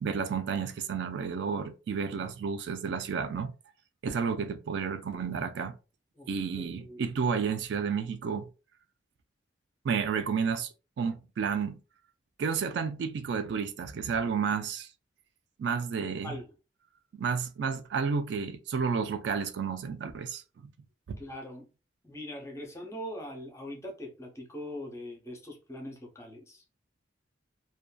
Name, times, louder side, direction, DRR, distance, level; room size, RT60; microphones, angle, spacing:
voice 1, 0.0-3.5 4.0-5.8 6.3-8.5 9.8-11.8 12.4-14.9 15.6-16.3 17.1-20.4 21.1-21.2, right 6 dB, 60° right, 0.3 m, -31 dB
voice 2, 6.2-7.0 16.0-16.5 21.2-21.7 22.0-26.6, left 1 dB, 15° left, 0.6 m, -42 dB
2.5 x 2.2 x 2.2 m
head